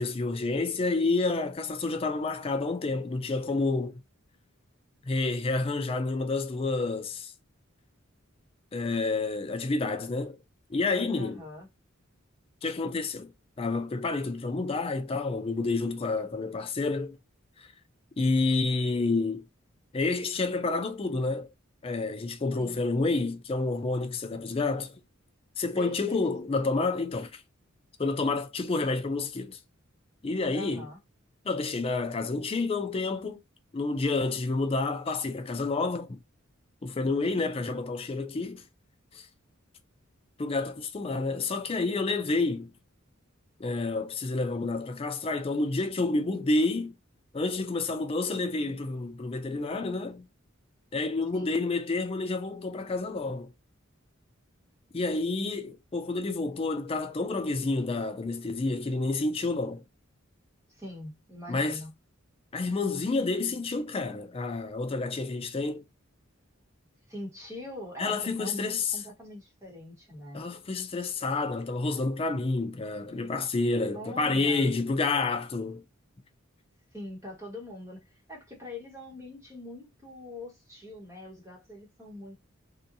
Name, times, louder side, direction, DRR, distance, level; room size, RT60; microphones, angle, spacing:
voice 1, 0.0-4.0 5.0-7.3 8.7-10.4 10.7-11.4 12.6-13.3 13.6-17.2 17.6-17.7 18.2-19.4 19.9-21.5 21.8-25.0 25.6-27.4 28.0-29.6 30.2-30.9 31.4-33.4 33.7-36.2 36.8-38.6 39.1-39.2 40.4-42.7 43.6-46.9 47.3-50.3 50.9-53.5 54.9-59.8 61.5-61.8 62.5-65.8 68.0-69.0 70.3-75.8, left 3 dB, 25° left, 0.4 m, -29 dB
voice 2, 11.1-11.7 22.6-22.8 25.8-26.5 30.5-31.0 37.2-37.5 51.3-51.6 60.7-61.9 67.1-70.4 73.9-74.7 76.9-82.3, left 1 dB, 15° right, 1.1 m, -43 dB
2.7 x 2.2 x 2.6 m
head